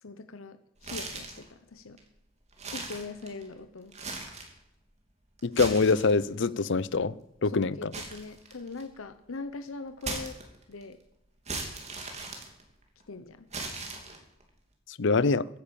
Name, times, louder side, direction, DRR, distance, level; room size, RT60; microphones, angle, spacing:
voice 1, 0.0-2.0 2.7-4.0 7.4-10.4 10.7-11.0 13.1-13.5, left 3 dB, 85° left, 10 dB, 0.9 m, -41 dB
sound 1, 0.8-1.5 2.0-2.1 2.5-3.5 3.9-4.6 5.4-6.4 7.9-9.0 10.0-10.8 11.5-13.0 13.5-14.4, right 3 dB, 35° right, 2.8 m, -38 dB
voice 2, 5.4-7.1 7.4-7.9 15.0-15.5, left 4 dB, 60° left, 19 dB, 0.6 m, -24 dB
15.5 x 10.0 x 7.0 m, 0.84 s
head